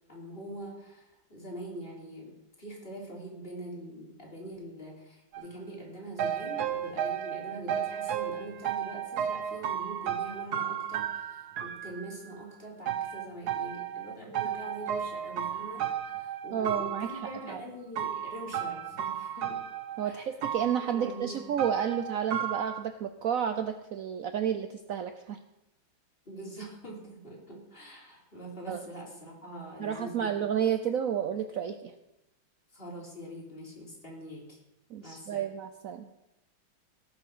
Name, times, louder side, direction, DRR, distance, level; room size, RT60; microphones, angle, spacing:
voice 1, 0.1-19.6 20.0-20.2 20.8-21.4 26.3-30.4 32.7-34.6 35.0-35.5, right 1 dB, 25° left, -2 dB, 3.4 m, -43 dB
sound 1, 5.3-5.4 6.2-12.2 12.9-17.5 18.0-20.1 20.4-22.8, right 9 dB, 60° right, 1.2 m, -34 dB
voice 2, 16.5-17.6 20.0-25.4 28.7-28.8 29.8-31.9 34.9-36.1, right 8 dB, 80° right, 9 dB, 0.7 m, -31 dB
17.5 x 6.8 x 6.2 m, 0.92 s
omnidirectional pair, 2.3 m